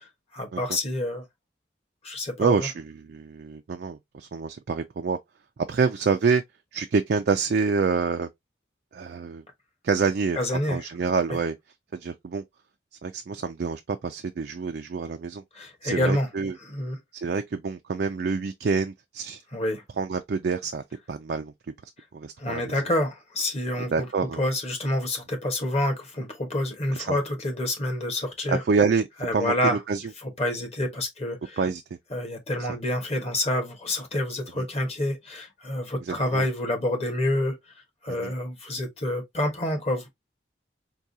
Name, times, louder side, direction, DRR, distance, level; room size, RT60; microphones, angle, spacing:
voice 1, 0.3-1.2 2.0-2.7 10.3-10.9 15.5-16.3 16.6-17.0 19.5-19.8 22.4-28.6 29.2-29.8 30.2-31.6 32.1-40.1, left 1 dB, 35° left, 1.1 m, -28 dB
voice 2, 2.4-5.2 5.7-6.4 6.7-8.3 8.9-9.4 9.8-10.4 10.7-11.5 11.9-12.4 13.0-15.4 15.8-16.5 17.1-19.4 20.0-21.5 22.1-22.6 23.9-24.4 27.0-27.2 28.5-29.0 29.3-30.0 31.6-31.8 36.1-36.4 38.1-38.3, right 5 dB, 55° right, 0.4 m, -27 dB
4.6 x 2.3 x 2.6 m
head